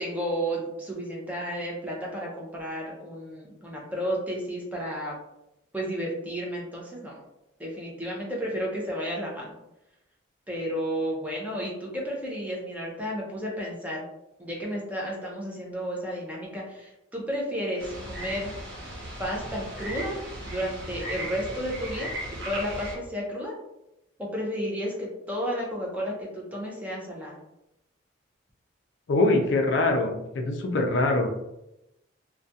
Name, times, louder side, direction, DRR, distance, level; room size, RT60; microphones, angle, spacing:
voice 1, 0.0-5.2 5.7-7.2 7.6-9.5 10.5-14.0 14.4-18.5 19.2-20.2 20.5-22.1 22.4-23.5 24.2-27.4, equal, 10° right, -3 dB, 0.5 m, -32 dB
sound 1, 17.8-23.0, right 1 dB, 60° right, 0.7 m, -37 dB
voice 2, 29.1-31.3, left 2 dB, 65° left, 3 dB, 0.4 m, -23 dB
2.4 x 2.2 x 2.6 m, 0.88 s
head